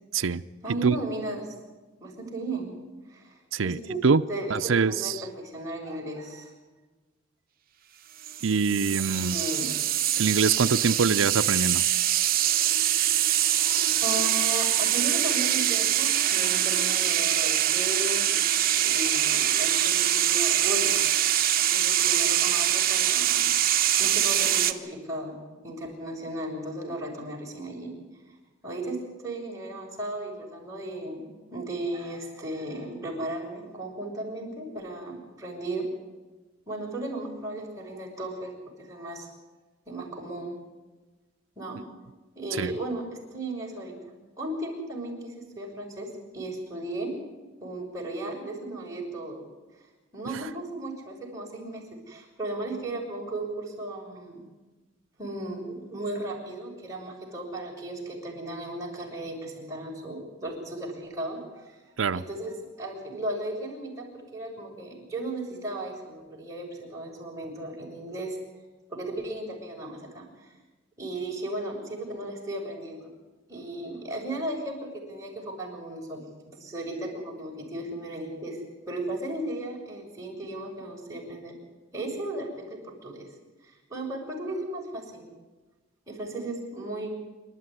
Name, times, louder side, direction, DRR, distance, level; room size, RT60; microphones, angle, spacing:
voice 1, 0.6-1.5 2.0-2.8 3.1-4.0 4.3-6.5 9.1-9.7 12.6-12.9 14.0-18.5 18.8-20.9 21.5-23.6 24.0-25.3 25.6-27.9 28.3-28.4 28.6-29.0 29.2-31.2 31.5-35.8 36.7-38.5 38.8-39.3 39.9-40.5 41.5-41.8 42.3-43.0 43.3-43.9 44.4-46.1 46.3-47.1 47.6-49.4 50.1-54.4 55.2-61.8 62.1-64.1 64.3-68.4 68.9-70.5 71.0-73.1 73.5-76.2 76.5-81.5 81.9-83.3 83.6-85.3 86.1-87.1, right 1 dB, 15° right, -3 dB, 6.8 m, -35 dB
voice 2, 3.5-4.2 4.5-5.2 8.4-9.4 10.2-11.8 42.5-42.7 62.0-62.2, right 5 dB, 85° right, 9 dB, 0.6 m, -24 dB
sound 1, 8.2-24.7, right 11 dB, 50° right, 1.2 m, -24 dB
27.0 x 12.5 x 9.8 m, 1.2 s
head